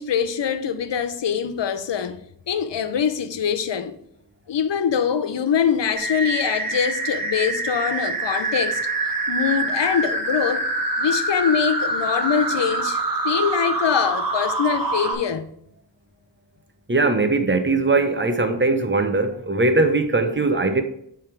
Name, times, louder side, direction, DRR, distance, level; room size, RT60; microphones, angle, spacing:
voice 1, 0.0-2.2 2.5-4.0 4.5-8.8 9.3-10.6 11.0-15.5, left 7 dB, 75° left, 0.6 m, -23 dB
sound 1, 6.0-15.1, right 2 dB, 50° right, 1.3 m, -25 dB
voice 2, 16.9-20.8, right 3 dB, 25° right, 0.8 m, -20 dB
8.2 x 3.6 x 4.5 m
wide cardioid pair, 50°, 43 cm